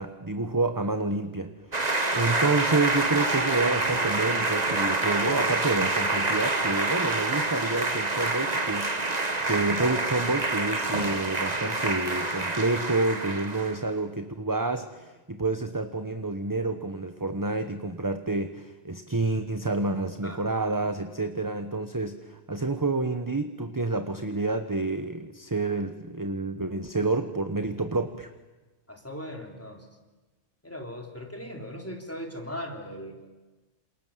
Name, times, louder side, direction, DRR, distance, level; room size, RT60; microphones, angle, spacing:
voice 1, 0.0-1.8 2.1-28.3, right 3 dB, 15° right, 8 dB, 1.0 m, -29 dB
sound 1, 1.7-13.8, right 2 dB, 30° right, 1.9 m, -27 dB
voice 2, 28.9-29.8 30.6-33.3, equal, 10° left, 2 dB, 3.6 m, -38 dB
28.0 x 28.0 x 7.5 m, 1.2 s
omnidirectional pair, 1.3 m